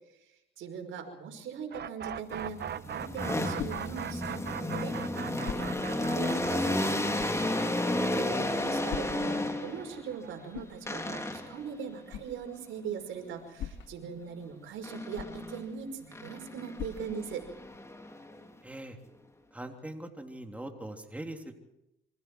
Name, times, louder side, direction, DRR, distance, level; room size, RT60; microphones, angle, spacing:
voice 1, 0.2-7.1 8.0-17.5, right 6 dB, 80° right, 4 dB, 5.3 m, -41 dB
sound 1, 1.7-11.5, right 9 dB, 55° right, 1.1 m, -41 dB
sound 2, 2.3-10.0 10.9-11.7 14.8-15.7 16.1-18.5, left 1 dB, 15° left, 3.5 m, -32 dB
sound 3, 5.2-17.8, left 9 dB, 70° left, 1.5 m, -47 dB
voice 2, 7.9-8.4 18.6-19.0 19.5-21.5, right 1 dB, 5° right, 3 dB, 3.4 m, -42 dB
28.5 x 25.5 x 4.7 m, 0.85 s
cardioid pair, 90°, 20 cm